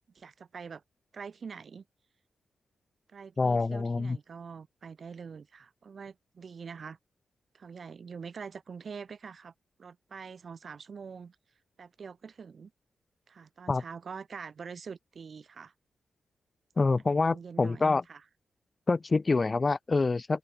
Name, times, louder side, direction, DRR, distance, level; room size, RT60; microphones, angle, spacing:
voice 1, 0.1-0.8 1.1-1.8 3.1-7.0 7.5-9.5 9.8-11.4 11.8-12.7 13.3-15.7 17.1-18.2, right 6 dB, 55° right, 7.1 m, -44 dB
voice 2, 3.4-4.2 13.7-13.8 16.8-18.0 18.9-20.4, left 3 dB, 35° left, 0.4 m, -26 dB
open air
cardioid pair, 85°, 0 cm